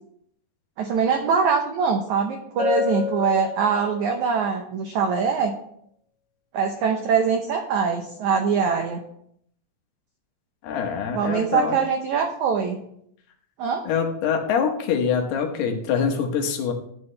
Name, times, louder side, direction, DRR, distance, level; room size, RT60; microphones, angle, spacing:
voice 1, 0.8-5.6 6.5-9.0 11.1-12.8 13.6-13.8, right 6 dB, 90° right, 4 dB, 1.6 m, -23 dB
Bell, 2.6-4.2, left 6 dB, 55° left, 1.2 m, -28 dB
voice 2, 10.6-11.8 13.9-16.7, left 6 dB, 75° left, 3 dB, 3.2 m, -24 dB
13.5 x 8.4 x 3.3 m, 0.69 s
omnidirectional pair, 4.7 m